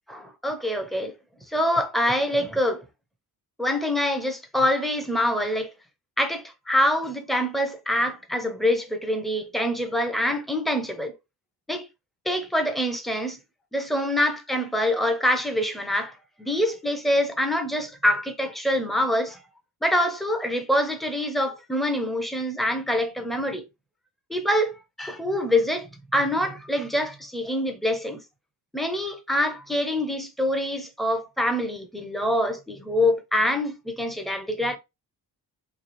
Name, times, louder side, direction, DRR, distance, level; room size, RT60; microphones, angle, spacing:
voice 1, 0.1-1.1 1.5-2.8 3.6-5.7 6.2-11.1 11.7-11.9 12.3-13.4 13.7-19.4 19.8-23.6 24.3-25.9 26.1-28.2 28.7-34.8, left 1 dB, ahead, 0.6 m, -25 dB
3.2 x 2.4 x 4.1 m
cardioid pair, 140°, 39 cm